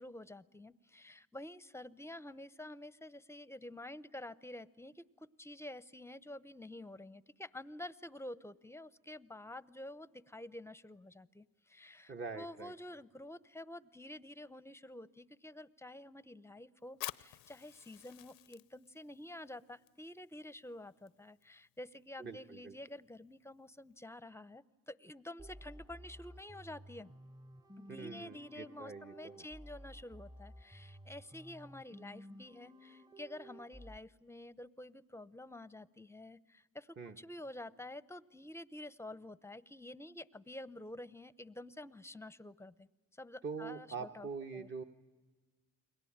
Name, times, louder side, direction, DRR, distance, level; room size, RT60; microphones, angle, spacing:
voice 1, 0.0-27.1 27.8-42.9 43.1-44.7, left 1 dB, 10° left, 16 dB, 0.8 m, -49 dB
voice 2, 12.1-12.7 22.2-22.8 27.9-29.4 37.0-37.2 43.4-44.8, right 5 dB, 35° right, 4 dB, 1.4 m, -44 dB
Fire, 16.9-24.1, left 16 dB, 80° left, 0.8 m, -52 dB
sound 1, 25.4-34.0, equal, 10° right, 1.1 m, -54 dB
30.0 x 22.0 x 8.8 m, 1.4 s
supercardioid pair, 75°, 33 cm